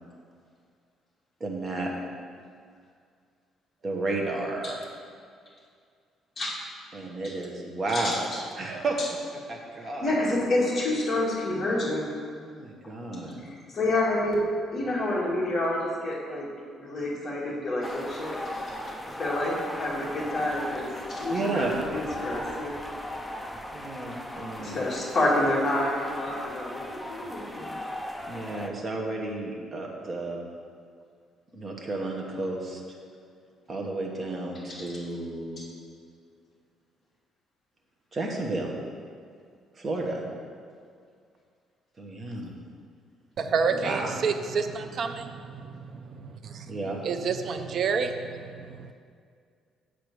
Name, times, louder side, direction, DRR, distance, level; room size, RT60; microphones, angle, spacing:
voice 1, 1.4-1.9 3.8-4.9 6.9-8.3 8.6-9.0 9.5-10.1 12.4-13.5 21.3-21.8 23.7-24.9 28.3-30.5 31.5-32.8 33.7-35.7 38.1-38.7 39.7-40.3 42.0-42.5 43.7-44.2 46.7-47.0, right 2 dB, 25° right, 0 dB, 1.2 m, -32 dB
voice 2, 9.8-12.1 13.7-14.4 14.7-16.5 16.8-18.6 19.1-22.7 24.6-27.7, left 1 dB, 25° left, -6 dB, 2.4 m, -28 dB
sound 1, 17.8-28.7, left 1 dB, 5° left, 0.5 m, -37 dB
voice 3, 43.4-46.8 47.0-48.9, right 5 dB, 45° right, 6 dB, 0.4 m, -29 dB
7.8 x 5.1 x 6.2 m, 2.2 s
cardioid pair, 145°, 0 cm